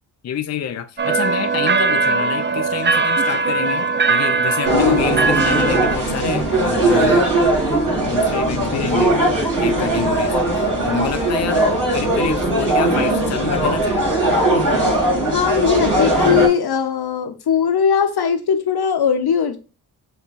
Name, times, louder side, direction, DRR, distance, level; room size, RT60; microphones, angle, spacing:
voice 1, 0.2-7.3 8.1-9.2 9.6-14.1, left 8 dB, 40° left, 0.4 m, -27 dB
sound 1, 1.0-6.0, right 4 dB, 30° right, 0.5 m, -19 dB
sound 2, 4.6-16.5, right 1 dB, 50° right, 2.2 m, -19 dB
voice 2, 4.7-5.0 15.3-19.6, left 7 dB, 65° left, 0.9 m, -19 dB
5.5 x 2.2 x 3.9 m
cardioid pair, 60°, 41 cm